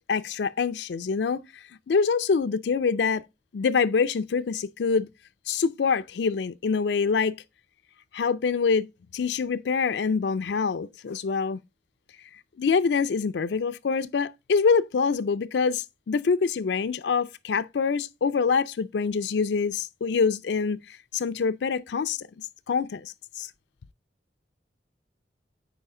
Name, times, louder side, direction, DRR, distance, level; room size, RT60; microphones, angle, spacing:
voice 1, 0.1-3.3 3.5-5.1 5.5-7.4 8.1-8.9 9.1-11.6 12.6-23.5, left 5 dB, 70° left, 0.4 m, -25 dB
9.0 x 5.0 x 3.7 m
head